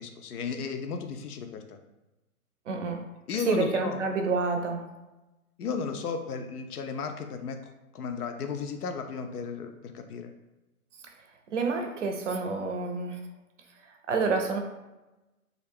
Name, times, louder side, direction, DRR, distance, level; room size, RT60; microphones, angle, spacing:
voice 1, 0.0-1.8 3.3-4.0 5.6-7.6 7.9-10.3, left 5 dB, 80° left, 6 dB, 0.5 m, -34 dB
voice 2, 2.7-3.0 3.5-4.9 11.5-13.2 14.1-14.6, right 4 dB, 55° right, 4 dB, 0.5 m, -28 dB
2.4 x 2.0 x 3.3 m, 1.0 s
hypercardioid pair, 150°, 45 cm